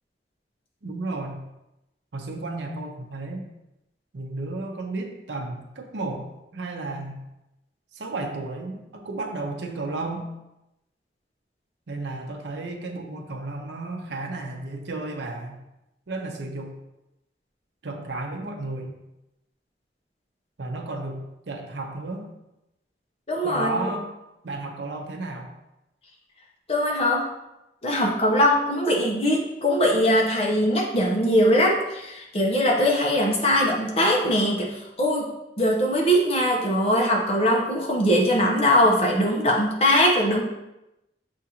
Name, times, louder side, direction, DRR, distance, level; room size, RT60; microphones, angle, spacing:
voice 1, 0.8-1.4 2.1-3.4 4.1-7.2 7.9-10.3 11.9-15.6 16.1-16.8 17.8-19.0 20.6-22.3 23.4-24.1 24.4-25.5, right 2 dB, 85° right, 3 dB, 0.6 m, -33 dB
voice 2, 23.3-23.9 26.7-27.3 27.8-35.3 35.6-40.4, equal, 35° left, -2 dB, 0.8 m, -21 dB
7.0 x 2.5 x 2.8 m, 0.92 s
head